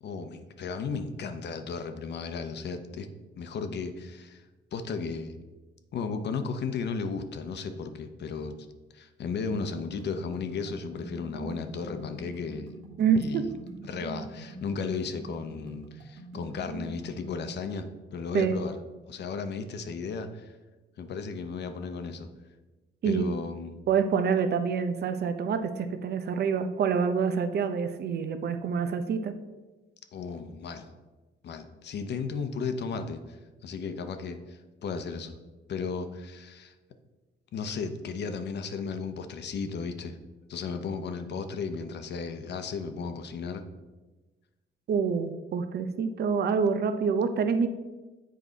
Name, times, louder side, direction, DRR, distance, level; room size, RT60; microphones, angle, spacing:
voice 1, 0.0-3.1 3.4-4.4 4.7-5.3 5.9-8.5 8.9-12.7 13.2-13.4 13.8-18.7 19.1-20.6 21.0-22.3 23.0-23.8 30.1-30.9 31.4-35.4 35.7-36.7 37.5-40.2 40.5-43.6, left 5 dB, 60° left, 8 dB, 0.8 m, -35 dB
sound 1, 9.5-17.5, right 2 dB, 90° right, 1.7 m, -44 dB
voice 2, 13.0-13.5 18.3-18.6 23.0-23.4 23.9-29.3 44.9-47.7, right 6 dB, 55° right, 9 dB, 0.6 m, -27 dB
7.6 x 4.7 x 3.9 m, 1.2 s
cardioid pair, 90°, 20 cm